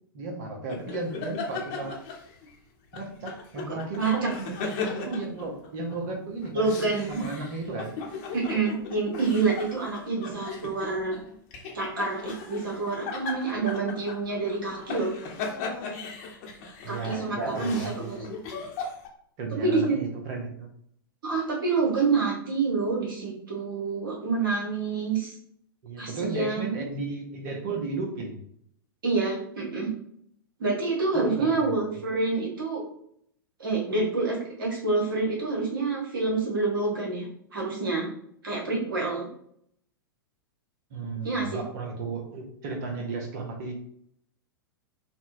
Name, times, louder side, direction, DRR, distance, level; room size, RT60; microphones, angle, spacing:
voice 1, 0.1-2.0 2.9-7.9 16.8-18.1 19.4-20.7 25.8-28.4 31.1-32.0 40.9-43.7, right 3 dB, 50° right, 2 dB, 0.8 m, -34 dB
sound 1, 0.7-2.6 2.9-6.0 6.4-19.1, left 4 dB, 45° left, 0.9 m, -37 dB
voice 2, 4.0-4.3 6.5-7.2 8.3-11.1 11.7-15.1 16.9-18.2 19.5-20.0 21.2-25.3 26.0-26.7 29.0-29.9 30.6-32.8 33.6-38.1 38.4-39.3 41.2-41.6, right 4 dB, 65° right, -2 dB, 1.2 m, -27 dB
4.1 x 2.2 x 2.6 m, 0.67 s
figure-of-eight pair, 100°, 12 cm